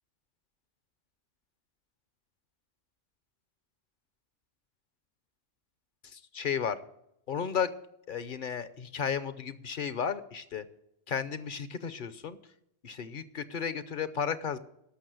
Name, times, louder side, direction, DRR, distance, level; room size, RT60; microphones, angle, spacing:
voice 1, 6.0-6.8 7.3-7.7 8.1-10.6 11.1-12.4 12.8-14.6, left 7 dB, 50° left, 13 dB, 0.9 m, -33 dB
13.0 x 6.3 x 7.8 m, 0.79 s
omnidirectional pair, 1.1 m